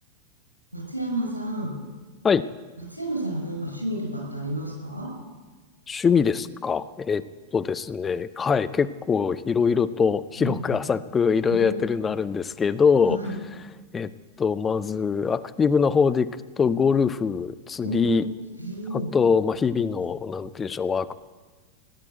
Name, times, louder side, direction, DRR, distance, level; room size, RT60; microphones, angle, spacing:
voice 1, 0.7-1.7 2.8-5.1 10.4-10.8 11.5-11.9 13.0-13.4 17.8-18.3 18.6-19.1, right 1 dB, 85° right, 0 dB, 5.8 m, -31 dB
voice 2, 5.9-7.2 7.5-13.2 13.9-14.1 14.4-16.3 16.6-18.3 18.9-21.1, left 6 dB, 20° left, 13 dB, 0.6 m, -23 dB
17.5 x 9.9 x 8.1 m, 1.3 s
figure-of-eight pair, 90°, 0 cm